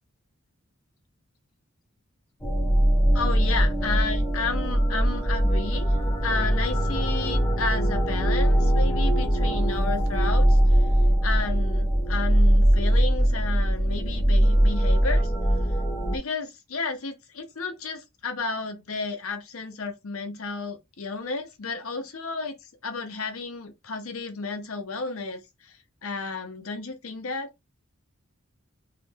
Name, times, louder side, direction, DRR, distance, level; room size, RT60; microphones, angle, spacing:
sound 1, 2.4-16.2, equal, 15° left, 0.9 m, -21 dB
voice 1, 3.1-10.6 11.2-15.3 16.1-22.6 22.8-25.7 26.0-27.5, left 4 dB, 85° left, 0.9 m, -32 dB
3.6 x 3.0 x 3.6 m
head